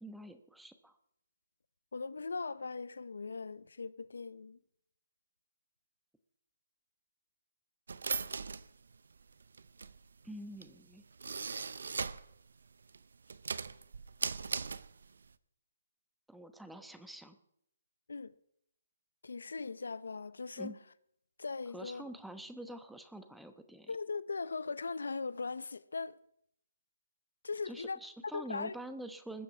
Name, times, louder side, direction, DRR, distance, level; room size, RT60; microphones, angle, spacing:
voice 1, 0.0-1.0 10.2-11.0 16.3-17.4 20.6-20.8 21.7-23.9 27.7-29.4, right 1 dB, ahead, 1.0 m, -46 dB
voice 2, 1.9-4.6 18.1-18.3 19.2-20.8 21.4-22.1 23.9-26.2 27.4-28.0 28.3-28.7, left 4 dB, 80° left, 0.6 m, -39 dB
sound 1, 7.9-12.3 12.7-15.3, right 5 dB, 75° right, 0.6 m, -39 dB
20.5 x 7.6 x 5.9 m
hypercardioid pair, 150°, 0 cm